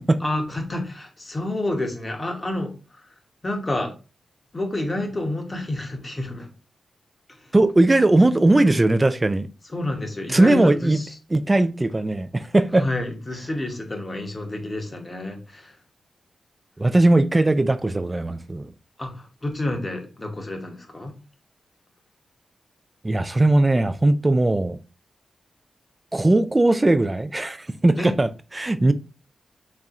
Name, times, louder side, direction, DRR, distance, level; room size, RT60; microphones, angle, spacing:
voice 1, 0.2-3.1 3.4-3.9 4.5-6.5 7.4-7.5 9.7-11.2 12.7-15.8 19.0-21.2 28.0-28.1, left 1 dB, 30° left, 0.9 m, -29 dB
voice 2, 7.5-9.5 10.3-11.0 11.3-12.9 16.8-18.7 23.0-24.8 26.1-28.3 28.5-28.9, right 2 dB, 20° right, 0.3 m, -19 dB
4.2 x 3.5 x 2.4 m
wide cardioid pair, 95°, 0 cm